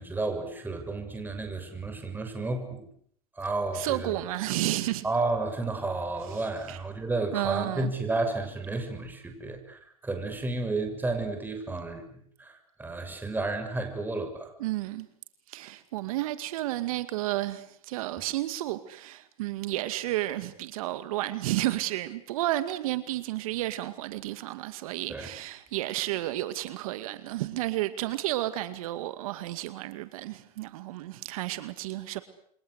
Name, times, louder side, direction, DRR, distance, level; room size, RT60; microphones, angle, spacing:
voice 1, 0.0-2.9 3.4-4.2 5.0-14.5 25.1-25.3, right 3 dB, 10° right, 7.0 m, -32 dB
voice 2, 3.7-5.0 6.7-6.8 7.3-7.9 14.6-15.1 15.5-32.2, right 16 dB, 75° right, 2.2 m, -32 dB
29.0 x 24.5 x 8.2 m
supercardioid pair, 125°, 18 cm